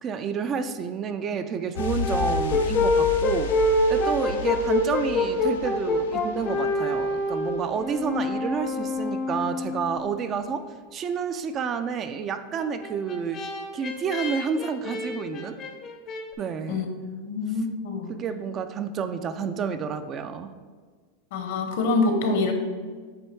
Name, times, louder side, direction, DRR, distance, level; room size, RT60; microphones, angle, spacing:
voice 1, 0.0-3.6 3.9-13.4 13.7-15.6 16.4-16.8 18.1-20.5, right 6 dB, 30° right, 10 dB, 0.4 m, -30 dB
Brass instrument, 1.7-10.1 12.6-16.2, left 2 dB, 30° left, 0.6 m, -26 dB
sound 1, 1.8-8.3 8.5-8.6, left 6 dB, 90° left, 0.6 m, -34 dB
voice 2, 16.7-18.1 21.3-22.5, left 3 dB, 65° left, 5 dB, 0.9 m, -26 dB
7.7 x 2.7 x 4.5 m, 1.5 s
supercardioid pair, 135°, 0 cm